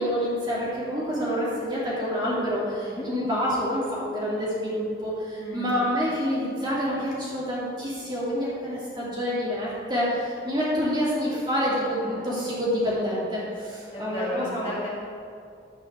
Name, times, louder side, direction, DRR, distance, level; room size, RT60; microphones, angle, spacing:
voice 1, 0.0-14.6, equal, 25° right, -8 dB, 2.7 m, -27 dB
voice 2, 5.4-5.8 11.7-13.3 13.9-14.9, left 1 dB, 30° left, -7 dB, 2.2 m, -36 dB
11.5 x 8.7 x 3.7 m, 2.5 s
head